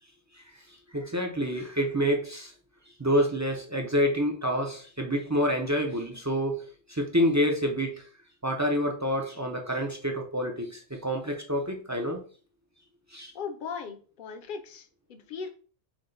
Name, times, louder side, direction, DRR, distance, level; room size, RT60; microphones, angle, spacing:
voice 1, 0.9-2.5 3.0-6.6 6.9-8.0 8.4-12.2 13.1-13.3, equal, 25° right, 0.4 m, -27 dB
voice 2, 13.3-15.5, left 5 dB, 55° left, 0.7 m, -38 dB
6.0 x 2.2 x 3.8 m
omnidirectional pair, 1.2 m